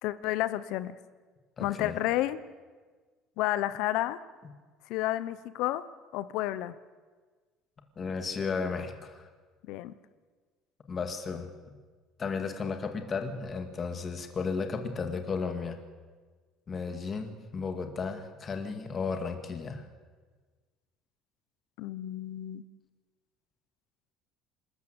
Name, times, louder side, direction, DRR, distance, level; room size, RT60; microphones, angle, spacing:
voice 1, 0.0-0.9 1.6-2.4 3.4-4.2 4.9-5.8 6.1-6.7 9.7-9.9 21.8-22.6, left 15 dB, 70° left, 15 dB, 1.0 m, -31 dB
voice 2, 1.6-2.0 8.0-9.3 10.9-11.5 12.2-15.8 16.7-19.9, left 5 dB, 25° left, 6 dB, 2.1 m, -34 dB
27.5 x 13.0 x 8.2 m, 1.4 s
cardioid pair, 160°, 0 cm